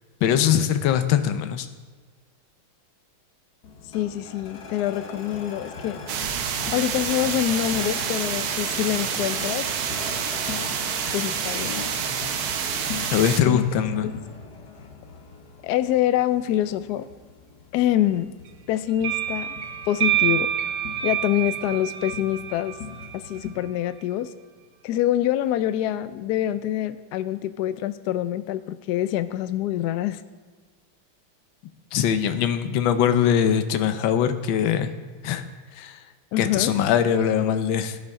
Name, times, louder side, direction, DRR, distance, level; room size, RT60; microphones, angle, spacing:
voice 1, 0.2-1.7 13.1-14.1 31.9-34.9 35.2-35.4 35.7-36.0 36.4-38.0, left 9 dB, 70° left, 9 dB, 1.5 m, -22 dB
sound 1, 3.6-23.5, left 5 dB, 55° left, 1.5 m, -40 dB
voice 2, 3.9-6.0 6.7-9.7 11.1-11.8 13.4-13.6 14.0-14.1 15.6-17.1 17.7-18.3 18.7-19.6 19.9-20.5 21.0-22.8 23.1-24.3 24.8-30.2 36.3-36.7, left 12 dB, 85° left, 12 dB, 0.9 m, -25 dB
sound 2, 6.1-13.4, right 7 dB, 80° right, 1.7 m, -28 dB
sound 3, 19.0-23.5, right 11 dB, 65° right, 1.2 m, -27 dB
17.0 x 10.5 x 3.6 m, 1.4 s
omnidirectional pair, 2.3 m